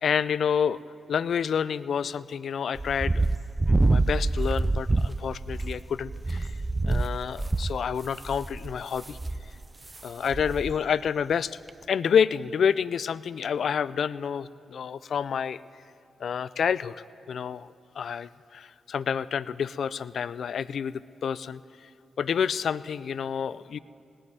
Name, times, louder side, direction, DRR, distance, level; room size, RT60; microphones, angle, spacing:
voice 1, 0.0-0.8 1.1-3.3 3.7-6.5 6.9-9.2 10.0-11.6 11.9-15.6 16.2-17.0 17.3-21.9 22.2-23.8, left 7 dB, 65° left, 18 dB, 0.4 m, -28 dB
sound 1, 2.8-10.0 10.3-10.8 11.1-11.2 11.7-11.8, right 2 dB, 25° right, 0.3 m, -27 dB
18.5 x 7.6 x 9.3 m, 2.5 s
cardioid pair, 65°, 0 cm